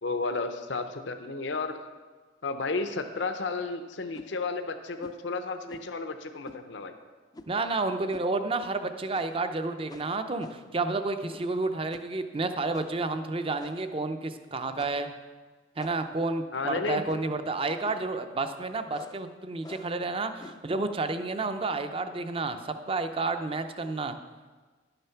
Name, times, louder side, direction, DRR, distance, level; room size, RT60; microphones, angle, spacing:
voice 1, 0.0-1.8 2.4-6.9 16.5-17.0, left 3 dB, 70° left, 7 dB, 0.7 m, -32 dB
sound 1, 4.1-4.3 5.0-5.2 5.7-6.0 6.4-6.6 7.3-7.6 8.1-8.3 8.6-8.7 9.1-9.5 9.9-10.8 11.3-11.6 11.9-12.1 12.7-13.0 13.6-14.0 14.8-15.1 15.8-16.2 17.0-17.4 17.8-18.1 18.9-19.2 19.6-20.0 20.4-20.7, left 2 dB, 20° left, 0.4 m, -48 dB
voice 2, 7.5-15.1 15.8-24.2, right 3 dB, 30° right, 9 dB, 0.6 m, -30 dB
11.5 x 6.8 x 5.7 m, 1.4 s
head